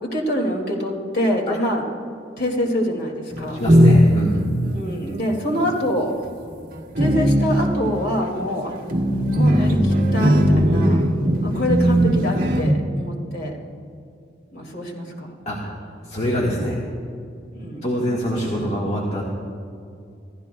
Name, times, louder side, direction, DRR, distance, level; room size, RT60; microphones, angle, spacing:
voice 1, 0.0-1.8 2.4-3.6 4.7-6.1 7.0-8.7 9.3-11.0 11.4-13.5 14.5-15.3 17.5-17.9, equal, 60° left, 0 dB, 2.3 m, -25 dB
sound 1, 3.3-4.5 5.5-5.9 6.3-12.7, equal, 50° right, 1.1 m, -18 dB
voice 2, 3.5-4.4 15.4-15.7 16.1-16.8 17.8-19.2, equal, 35° left, -5 dB, 1.6 m, -24 dB
27.0 x 14.0 x 2.3 m, 2.4 s
head